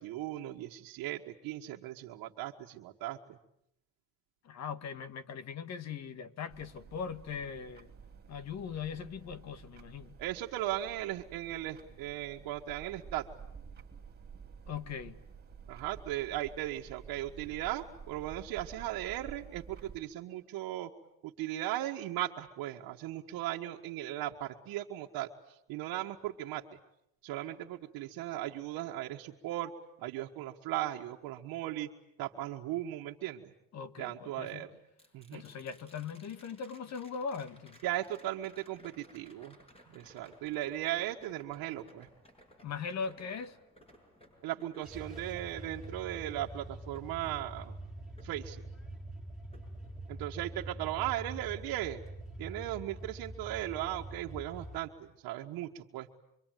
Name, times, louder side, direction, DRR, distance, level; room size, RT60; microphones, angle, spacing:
voice 1, 0.0-3.2 10.2-13.3 15.7-20.9 21.2-26.6 27.2-29.7 30.0-31.9 32.2-33.5 34.0-34.7 35.1-35.4 37.8-39.6 39.9-42.1 44.4-47.7 48.2-48.6 50.1-52.0 52.4-56.1, right 14 dB, 75° right, 1.7 m, -37 dB
voice 2, 4.4-7.9 8.3-10.1 14.7-15.2 33.7-34.7 35.3-37.8 42.6-43.6, left 6 dB, 50° left, 1.8 m, -40 dB
sound 1, 6.5-20.0, right 6 dB, 30° right, 2.9 m, -51 dB
sound 2, 35.0-49.1 49.5-50.6 52.8-52.9, equal, 15° left, 7.1 m, -61 dB
sound 3, 44.8-54.8, right 1 dB, ahead, 4.7 m, -45 dB
25.5 x 25.0 x 9.3 m
cardioid pair, 130°, 35 cm